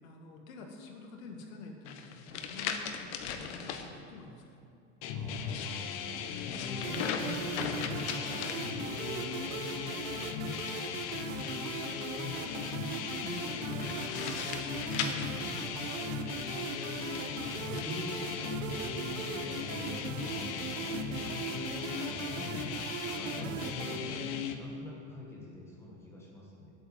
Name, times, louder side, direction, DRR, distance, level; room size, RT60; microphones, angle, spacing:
voice 1, 0.0-4.6 10.3-10.9 11.8-14.6 15.5-15.9 16.4-16.8 21.3-22.8, left 3 dB, 85° left, 2 dB, 1.9 m, -49 dB
sound 1, 1.9-3.9 5.3-9.2 10.6-11.9 13.7-16.1 16.9-17.9, left 7 dB, 60° left, 1.0 m, -39 dB
sound 2, 5.0-24.5, left 7 dB, 30° left, 0.4 m, -38 dB
voice 2, 5.1-9.5 14.9-15.6 17.0-21.5 22.0-22.5 23.1-26.7, left 1 dB, 5° left, -4 dB, 1.1 m, -45 dB
sound 3, 6.8-24.0, right 8 dB, 75° right, 1.0 m, -40 dB
8.4 x 7.8 x 8.0 m, 2.5 s
supercardioid pair, 180°, 39 cm